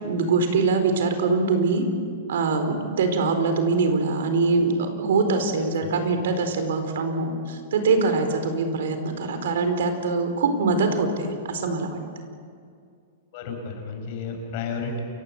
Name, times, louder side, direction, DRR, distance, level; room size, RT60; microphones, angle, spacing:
voice 1, 0.0-1.8 2.3-12.0, right 4 dB, 75° right, 7 dB, 4.4 m, -23 dB
voice 2, 5.5-5.9 13.3-15.0, left 4 dB, 45° left, 4 dB, 5.8 m, -33 dB
29.0 x 16.0 x 8.0 m, 2.3 s
supercardioid pair, 160°, 0 cm